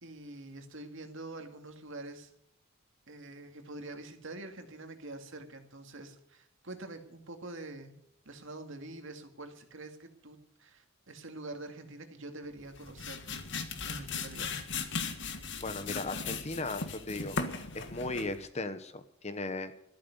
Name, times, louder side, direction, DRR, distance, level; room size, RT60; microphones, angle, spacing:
voice 1, 0.0-2.3 3.1-8.0 8.3-13.2 13.8-14.6, right 2 dB, 65° right, 6 dB, 2.3 m, -45 dB
sound 1, 12.6-18.4, left 4 dB, 55° left, 1.7 m, -37 dB
voice 2, 15.6-17.4 17.7-19.7, left 2 dB, 30° left, 11 dB, 1.1 m, -37 dB
14.0 x 12.0 x 6.8 m, 0.76 s
head